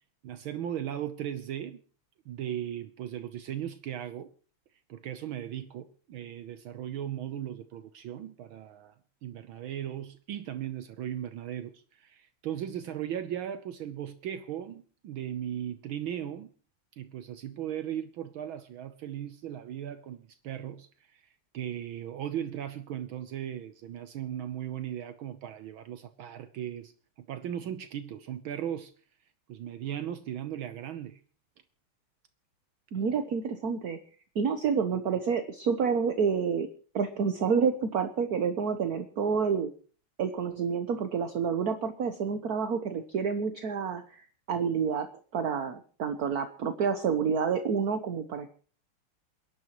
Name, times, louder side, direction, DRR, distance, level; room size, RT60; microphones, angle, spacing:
voice 1, 0.2-1.8 2.3-4.3 4.9-9.0 9.2-16.5 16.9-26.9 27.2-28.9 29.5-31.2, right 10 dB, 70° right, 1.6 m, -37 dB
voice 2, 32.9-34.0 34.3-36.7 36.9-39.7 40.2-44.2 44.5-45.1 45.3-48.5, right 6 dB, 50° right, 1.4 m, -28 dB
28.5 x 11.0 x 3.1 m
omnidirectional pair, 2.4 m